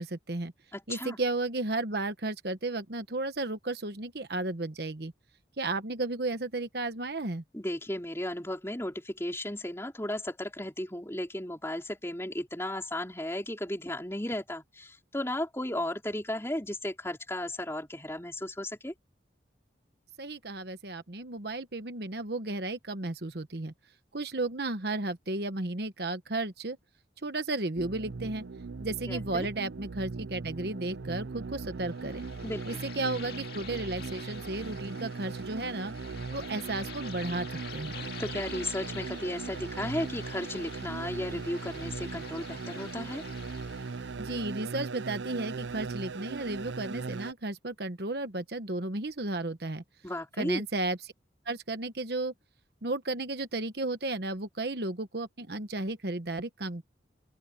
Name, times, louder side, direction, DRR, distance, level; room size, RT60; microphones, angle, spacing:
voice 1, 0.0-0.5 0.9-5.1 5.6-7.4 20.2-23.7 24.1-26.8 27.2-28.4 28.8-32.2 32.7-35.9 36.3-37.5 37.7-38.0 44.2-49.8 50.4-51.1 51.5-52.3 52.8-56.8, right 2 dB, 60° right, 1.2 m, -33 dB
voice 2, 0.7-1.2 7.5-18.9 29.1-29.5 32.4-32.8 38.2-43.2 50.0-50.6, left 1 dB, 15° left, 4.0 m, -35 dB
sound 1, 27.8-47.3, right 4 dB, 80° right, 0.6 m, -39 dB
sound 2, 31.9-44.1, left 7 dB, 55° left, 2.3 m, -47 dB
open air
head